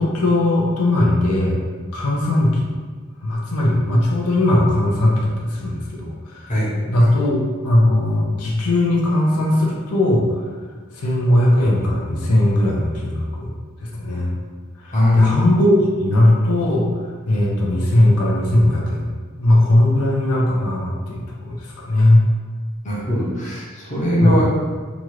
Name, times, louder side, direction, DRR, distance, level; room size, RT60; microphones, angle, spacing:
voice 1, 0.0-1.6 1.9-2.7 3.2-6.6 6.8-10.4 10.9-13.5 13.8-14.3 14.8-16.9 17.3-19.1 19.4-22.2 24.2-24.3, left 1 dB, 90° left, -2 dB, 0.6 m, -18 dB
voice 2, 14.9-15.3 22.8-24.6, left 1 dB, 35° left, -7 dB, 0.7 m, -20 dB
2.9 x 2.4 x 3.0 m, 1.5 s
head